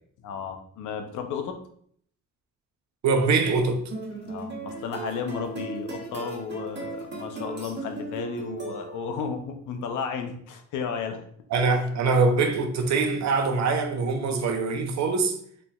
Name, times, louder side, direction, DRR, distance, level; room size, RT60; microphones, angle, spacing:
voice 1, 0.2-1.6 4.2-11.2, left 6 dB, 80° left, 0.7 m, -33 dB
voice 2, 3.0-3.8 11.5-15.4, right 4 dB, 65° right, 0.7 m, -23 dB
sound 1, 3.9-9.3, right 3 dB, 35° right, 1.3 m, -37 dB
3.9 x 3.2 x 2.3 m
cardioid pair, 90°, 30 cm